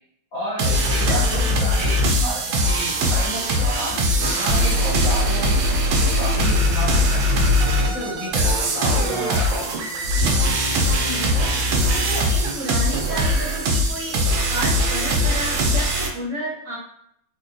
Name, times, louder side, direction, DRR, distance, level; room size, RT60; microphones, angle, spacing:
voice 1, 0.3-4.1 4.3-7.3 7.7-9.7, equal, 60° left, -7 dB, 0.9 m, -31 dB
sound 1, 0.6-16.1, equal, 70° right, 1.1 m, -21 dB
sound 2, 2.7-15.8, left 4 dB, 80° left, 1.6 m, -39 dB
voice 2, 10.9-14.2 14.5-16.8, equal, 55° right, -5 dB, 0.9 m, -31 dB
4.3 x 2.3 x 2.6 m, 0.72 s
omnidirectional pair, 2.4 m